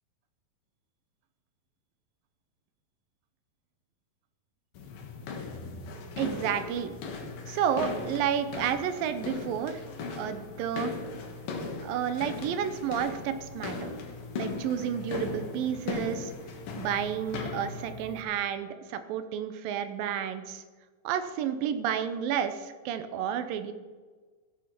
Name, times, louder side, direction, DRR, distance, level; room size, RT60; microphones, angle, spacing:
sound 1, 4.8-18.2, left 4 dB, 75° left, 3.3 m, -38 dB
voice 1, 6.2-6.9 7.5-9.8 10.1-10.9 11.8-13.9 14.4-16.3 16.7-20.6 21.0-23.7, right 8 dB, 80° right, 11 dB, 2.5 m, -31 dB
15.0 x 8.4 x 5.9 m, 1.4 s
omnidirectional pair, 4.2 m